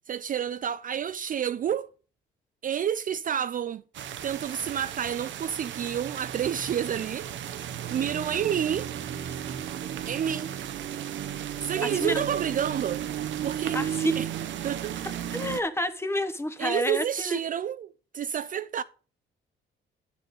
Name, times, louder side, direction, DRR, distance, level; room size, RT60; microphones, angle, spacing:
voice 1, 0.1-1.9 2.6-3.8 4.2-7.3 7.9-8.9 10.1-10.5 11.6-13.1 13.4-13.8 14.2-14.3 14.6-15.2 16.6-18.8, right 9 dB, 45° right, 0.4 m, -29 dB
sound 1, 3.9-15.6, right 10 dB, 70° right, 0.8 m, -34 dB
voice 2, 11.8-12.2 13.7-14.1 15.3-17.4, left 1 dB, 10° left, 0.9 m, -29 dB
9.6 x 4.2 x 6.3 m
cardioid pair, 90°, 20 cm